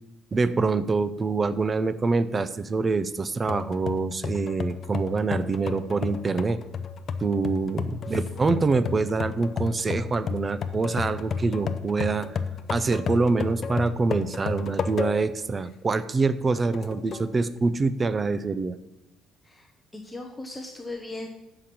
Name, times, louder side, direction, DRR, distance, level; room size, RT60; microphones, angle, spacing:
voice 1, 0.3-6.6 7.2-12.3 12.7-18.8, right 4 dB, 25° right, 14 dB, 0.5 m, -25 dB
sound 1, 3.5-15.4 15.9-16.0 16.7-17.3, left 6 dB, 45° left, 0.6 m, -33 dB
voice 2, 19.9-21.3, left 2 dB, 10° left, 2 dB, 0.8 m, -38 dB
9.0 x 6.8 x 5.9 m, 0.92 s
cardioid pair, 140°, 0 cm